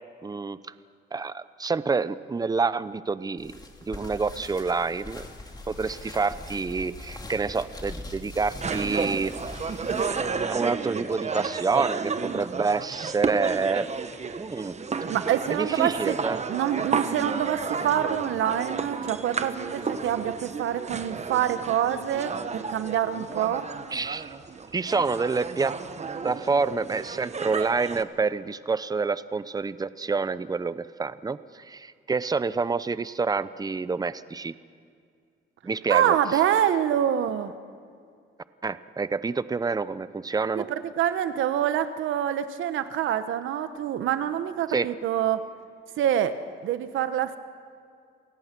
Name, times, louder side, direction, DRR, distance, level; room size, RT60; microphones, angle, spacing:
voice 1, 0.2-0.6 1.1-3.5 3.9-5.3 5.7-9.3 10.4-13.9 14.4-14.7 15.5-16.4 23.9-24.3 24.7-25.7 26.2-34.5 35.6-36.2 38.6-40.7 44.7-44.9, right 4 dB, 20° right, 15 dB, 0.7 m, -27 dB
sound 1, 3.4-10.4, left 2 dB, 20° left, 2.8 m, -42 dB
sound 2, 8.6-28.0, right 5 dB, 35° right, 1.2 m, -32 dB
voice 2, 15.1-16.1 16.5-23.7 35.9-37.5 40.5-45.4 46.0-47.4, right 10 dB, 80° right, 11 dB, 1.2 m, -26 dB
28.0 x 17.5 x 6.1 m, 2.2 s
cardioid pair, 90°, 20 cm